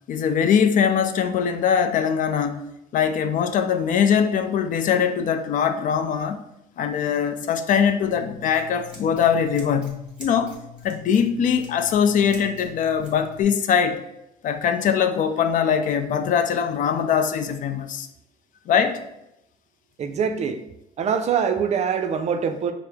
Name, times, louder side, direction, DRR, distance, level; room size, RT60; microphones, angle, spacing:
voice 1, 0.1-2.6 2.9-6.4 6.8-10.6 10.8-14.0 14.4-18.1 18.7-19.0, left 7 dB, 50° left, 0.4 m, -22 dB
Scissors, 8.0-13.4, left 4 dB, 5° right, 1.3 m, -44 dB
voice 2, 20.0-20.6 21.0-22.7, right 7 dB, 40° right, 0.4 m, -24 dB
4.5 x 2.0 x 3.4 m
cardioid pair, 110°, 17 cm